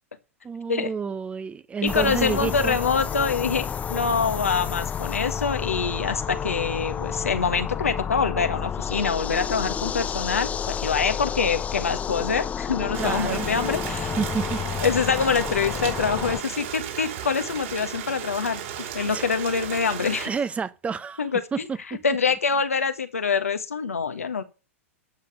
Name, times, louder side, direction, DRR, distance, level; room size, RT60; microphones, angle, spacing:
voice 1, 0.4-2.8 13.0-13.5 14.2-14.6 19.1-19.2 20.1-21.2 21.5-21.8, right 5 dB, 15° right, 0.8 m, -29 dB
voice 2, 1.8-14.1 14.8-18.6 18.9-20.3 21.2-21.4 21.9-24.4, left 5 dB, 80° left, 1.5 m, -25 dB
sound 1, 1.9-16.4, left 7 dB, 20° left, 0.6 m, -30 dB
Rain, 12.9-20.3, right 9 dB, 60° right, 4.1 m, -34 dB
12.5 x 6.8 x 6.7 m
figure-of-eight pair, 105°, 8 cm